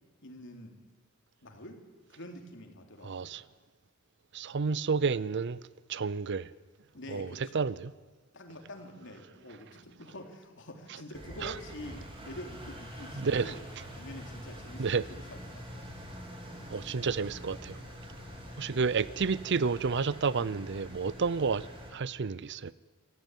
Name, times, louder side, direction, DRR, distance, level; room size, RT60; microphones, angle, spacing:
voice 1, 0.2-0.7 1.4-1.8 2.1-3.3 6.9-7.6 8.3-13.6 13.9-15.9, left 1 dB, 60° left, 3.5 m, -46 dB
voice 2, 3.0-3.4 4.3-5.6 5.9-6.5 7.1-7.3 7.5-7.9 11.4-11.5 13.2-13.5 14.8-15.0 16.7-17.8 18.6-21.7 21.9-22.9, right 5 dB, 55° right, 0.6 m, -30 dB
Engine, 11.1-21.9, equal, 25° right, 4.1 m, -45 dB
27.0 x 15.0 x 9.2 m
head